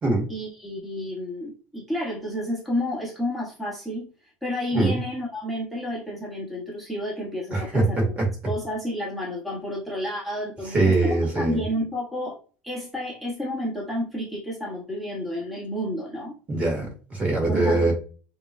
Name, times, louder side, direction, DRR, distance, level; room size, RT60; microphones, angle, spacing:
voice 1, 0.3-4.1 4.4-8.1 8.5-12.3 12.6-16.4 17.5-17.9, left 1 dB, ahead, 1.7 m, -30 dB
voice 2, 7.5-7.8 8.2-8.3 10.7-11.6 16.5-17.9, right 2 dB, 25° right, 2.2 m, -22 dB
7.2 x 3.1 x 2.3 m
cardioid pair, 145°, 5 cm